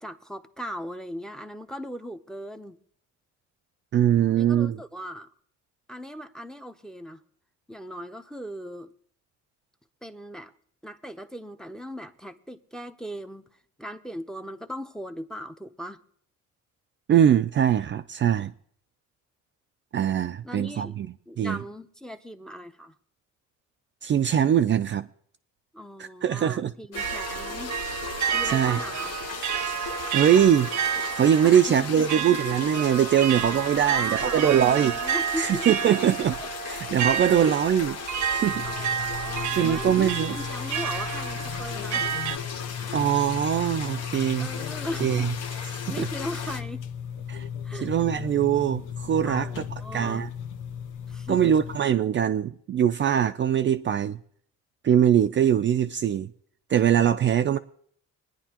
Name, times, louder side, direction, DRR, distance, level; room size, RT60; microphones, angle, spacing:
voice 1, 0.0-2.8 4.3-5.3 5.9-7.2 7.7-8.9 10.0-10.5 10.8-13.5 13.8-16.0 20.4-20.9 21.3-22.9 25.7-27.8 28.3-29.2 31.4-32.1 33.1-35.7 35.9-36.0 36.4-36.5 36.8-37.0 37.4-37.5 38.6-42.1 44.4-45.1 45.9-46.8 47.6-47.9 49.2-50.3 51.1-51.5, equal, ahead, 0.7 m, -38 dB
voice 2, 3.9-4.8 17.1-18.5 19.9-21.1 21.4-21.6 24.0-25.1 26.0-26.7 28.4-28.8 30.1-30.7 31.2-34.9 35.4-36.4 36.6-38.0 38.3-38.7 39.5-40.4 42.9-44.5 45.0-45.3 45.6-46.1 47.3-47.4 47.8-49.6 49.9-50.3 51.3-54.2 54.8-56.3 56.7-57.6, right 9 dB, 40° right, 0.4 m, -22 dB
sound 1, 26.9-46.6, left 6 dB, 55° left, 1.1 m, -37 dB
sound 2, 27.0-42.4, right 9 dB, 70° right, 0.8 m, -30 dB
sound 3, 38.5-51.8, left 8 dB, 75° left, 0.9 m, -36 dB
23.5 x 10.0 x 2.9 m
cardioid pair, 115°, 31 cm